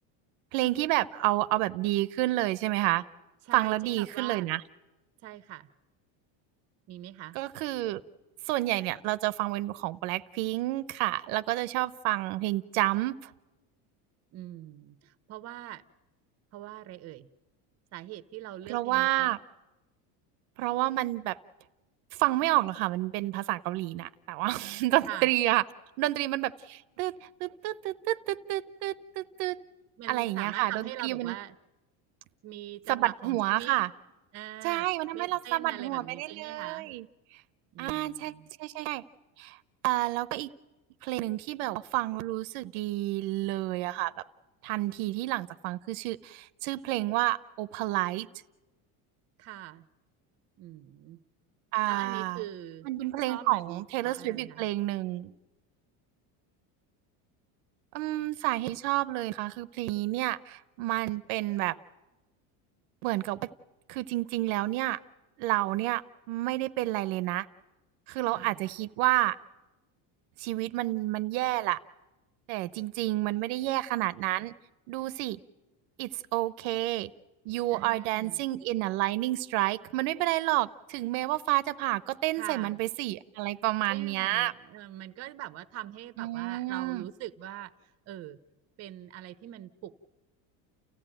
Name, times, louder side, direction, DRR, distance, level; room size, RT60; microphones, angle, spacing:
voice 1, 0.5-3.0 3.5-4.6 7.3-8.0 8.5-13.3 18.7-19.4 20.6-21.4 22.2-25.6 26.0-29.6 30.1-31.3 32.9-33.9 34.6-37.0 37.8-39.0 39.4-39.6 39.8-40.5 41.0-44.1 44.6-48.3 51.7-52.4 52.8-55.3 57.9-61.8 63.0-63.5 63.9-65.0 65.4-66.0 66.3-67.5 68.1-69.4 70.4-71.8 72.5-74.5 74.9-75.4 76.0-77.1 77.5-84.5 86.2-87.0, right 17 dB, 75° right, 16 dB, 0.8 m, -29 dB
voice 2, 3.5-4.5 5.2-5.7 6.9-7.4 14.3-15.8 16.5-17.3 17.9-19.4 25.1-25.3 30.0-31.6 32.4-33.8 34.3-34.9 35.1-36.9 37.7-38.5 49.4-49.9 50.6-51.2 51.8-52.9 53.2-54.7 68.3-68.6 77.7-78.4 82.3-82.8 83.9-87.7 88.1-88.4 88.8-89.9, right 14 dB, 35° right, 15 dB, 0.8 m, -42 dB
30.0 x 15.0 x 9.0 m, 1.1 s
cardioid pair, 160°, 43 cm